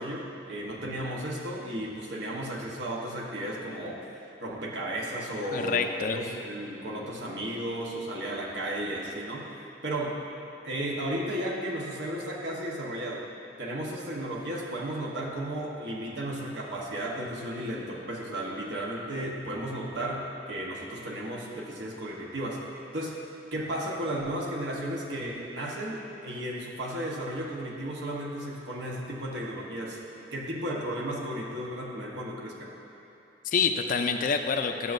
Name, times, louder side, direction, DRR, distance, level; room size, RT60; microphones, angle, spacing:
voice 1, 0.0-4.1 4.4-9.5 9.8-10.2 10.6-13.3 13.6-22.6 22.9-23.2 23.5-30.0 30.3-32.7, right 1 dB, 70° right, -2 dB, 1.1 m, -34 dB
voice 2, 5.5-6.2 33.4-34.9, left 5 dB, 50° left, 6 dB, 0.4 m, -27 dB
12.0 x 6.8 x 2.6 m, 2.8 s
head